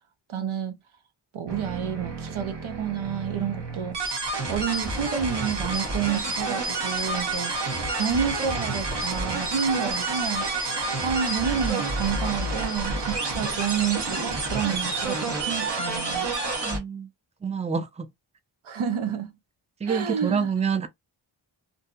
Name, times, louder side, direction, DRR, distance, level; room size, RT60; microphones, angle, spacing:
voice 1, 0.3-0.8 1.3-4.0 4.5-7.5 8.0-10.5 11.0-16.3 18.6-19.3 19.9-20.5, right 8 dB, 90° right, 0.7 m, -29 dB
sound 1, 1.5-16.8, right 3 dB, 60° right, 1.2 m, -29 dB
voice 2, 16.6-17.1 17.4-18.1 19.8-20.9, right 6 dB, 15° right, 0.4 m, -27 dB
2.6 x 2.6 x 2.2 m
cardioid pair, 45°, 47 cm